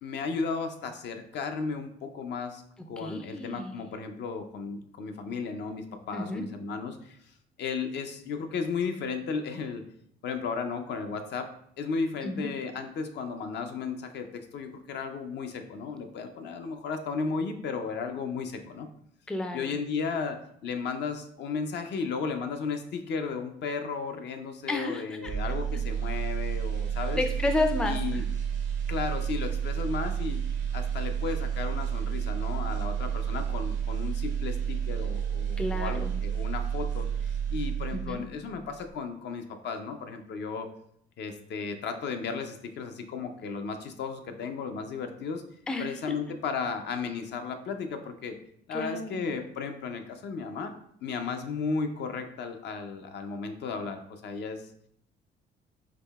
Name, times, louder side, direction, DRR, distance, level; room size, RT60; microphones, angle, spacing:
voice 1, 0.0-7.2 7.6-9.8 10.2-18.9 19.5-27.2 27.8-28.2 28.9-30.4 30.7-40.7 41.2-45.4 45.8-48.4 48.7-50.7 51.0-54.7, left 5 dB, 65° left, 6 dB, 0.5 m, -34 dB
voice 2, 3.0-3.8 6.1-6.4 12.2-12.5 19.3-19.7 24.7-25.3 25.7-25.8 27.2-28.2 35.6-36.2 38.0-38.2 45.7-45.9 48.7-49.3, left 2 dB, 5° left, 6 dB, 0.3 m, -31 dB
sound 1, 25.2-38.4 38.7-38.9, right 8 dB, 80° right, 0.6 m, -30 dB
4.7 x 2.7 x 2.3 m, 0.69 s
cardioid pair, 100°, 19 cm